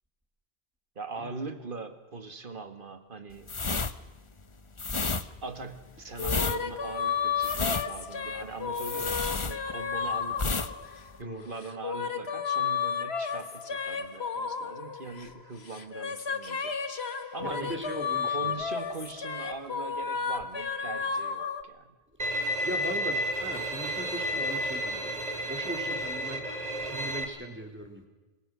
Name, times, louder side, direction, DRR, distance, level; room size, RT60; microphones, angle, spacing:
voice 1, 1.0-3.5 5.4-10.8 11.2-16.8 17.3-17.8 18.2-22.0, right 4 dB, 55° right, 9 dB, 2.2 m, -41 dB
sound 1, 3.4-10.0 10.3-10.7 11.0-11.2, left 4 dB, 30° left, 1.0 m, -31 dB
sound 2, 6.2-11.2 11.6-15.4 15.7-21.6, left 6 dB, 85° left, 1.7 m, -33 dB
voice 2, 17.4-18.5 22.6-28.1, equal, 10° right, 3 dB, 3.8 m, -39 dB
Bowed string instrument, 22.2-27.2, equal, 40° right, 2.6 m, -31 dB
27.0 x 22.5 x 6.4 m, 1.2 s
omnidirectional pair, 1.0 m